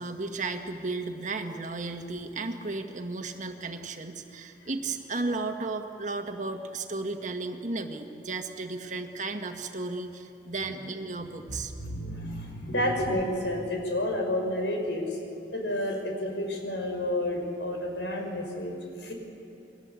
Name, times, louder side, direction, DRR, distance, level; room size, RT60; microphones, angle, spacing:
voice 1, 0.0-11.7, right 3 dB, 40° right, 5 dB, 1.7 m, -34 dB
voice 2, 11.8-15.2 15.5-18.7 19.0-19.1, left 1 dB, 75° left, 2 dB, 5.8 m, -30 dB
29.5 x 23.0 x 8.3 m, 3.0 s
head